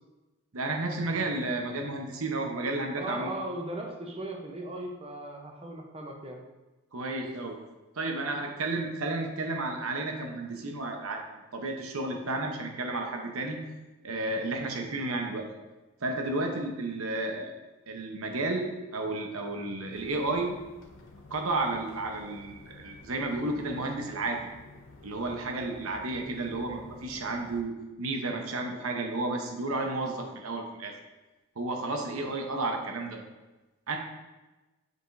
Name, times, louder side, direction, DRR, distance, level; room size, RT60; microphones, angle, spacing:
voice 1, 0.5-3.3 6.9-7.6 8.0-13.6 14.0-15.5 16.0-17.5 17.9-20.6 21.3-24.5 25.0-31.0 31.6-33.2 33.9-34.0, right 2 dB, 85° right, 3 dB, 0.9 m, -32 dB
voice 2, 3.0-6.4, right 1 dB, 25° right, 1 dB, 0.8 m, -37 dB
sound 1, 19.9-27.6, left 2 dB, 65° left, 0.8 m, -51 dB
8.0 x 4.9 x 2.6 m, 1.1 s
head